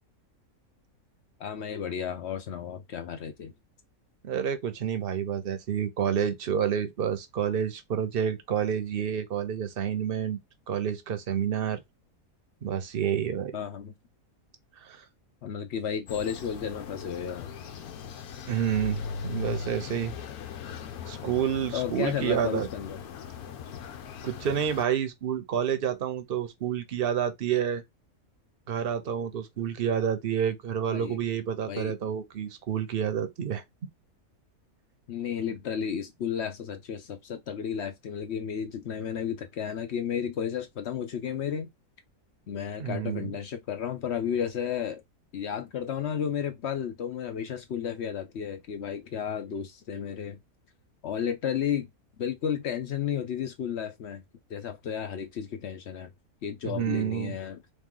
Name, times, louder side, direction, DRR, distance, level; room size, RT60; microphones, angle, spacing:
voice 1, 1.4-3.5 13.5-13.9 15.4-17.5 21.7-23.0 30.9-31.2 31.7-31.9 35.1-41.7 42.5-45.0 45.3-50.4 51.0-51.9 52.2-54.2 54.5-56.1 56.4-57.6, left 8 dB, 60° left, 0.8 m, -33 dB
voice 2, 4.2-10.4 10.7-11.8 12.6-13.5 14.8-15.0 18.5-20.1 21.1-22.7 24.2-27.8 28.7-33.6 42.8-43.3 56.6-57.4, right 8 dB, 50° right, 0.8 m, -29 dB
sound 1, 16.1-24.8, left 6 dB, 85° left, 1.2 m, -39 dB
3.5 x 3.1 x 3.7 m
omnidirectional pair, 1.5 m